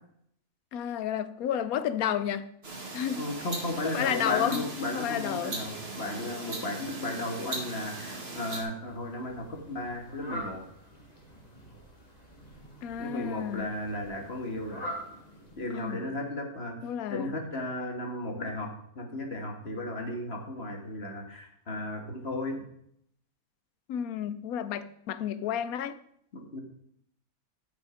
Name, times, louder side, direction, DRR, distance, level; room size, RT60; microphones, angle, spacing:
voice 1, 0.7-2.5 2.9-3.2 3.8-4.6 4.9-5.6 12.8-13.7 15.7-16.1 16.8-17.3 23.9-26.0, left 9 dB, 75° left, 1.1 m, -31 dB
sound 1, 2.6-8.6, right 2 dB, 45° right, 1.8 m, -39 dB
voice 2, 3.2-10.6 13.0-14.9 15.6-16.7 17.1-22.6 26.3-26.6, left 1 dB, 45° left, 1.9 m, -35 dB
Fowl, 8.7-16.1, equal, 25° left, 2.1 m, -45 dB
12.0 x 6.4 x 5.1 m
omnidirectional pair, 1.6 m